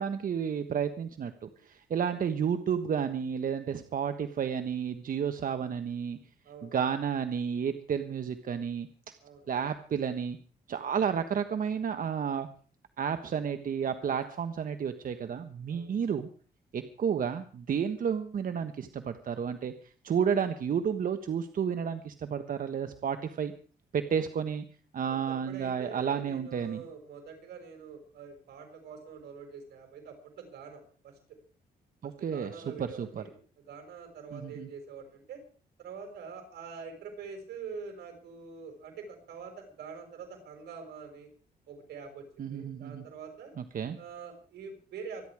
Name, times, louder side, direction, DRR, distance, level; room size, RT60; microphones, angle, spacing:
voice 1, 0.0-6.2 6.6-8.9 9.5-10.4 10.7-12.5 13.0-16.3 16.7-19.7 20.0-23.5 23.9-24.6 24.9-26.8 32.0-32.5 32.8-33.2 34.3-34.7 42.4-43.0 43.7-44.0, right 7 dB, 55° right, 8 dB, 1.3 m, -31 dB
voice 2, 6.4-6.8 9.2-9.5 15.7-15.9 25.1-31.1 32.0-33.4 33.7-35.4 35.8-41.3 41.7-43.5 44.0-45.3, right 5 dB, 85° right, 4 dB, 5.8 m, -45 dB
25.5 x 10.5 x 4.8 m, 0.42 s
cardioid pair, 90°, 17 cm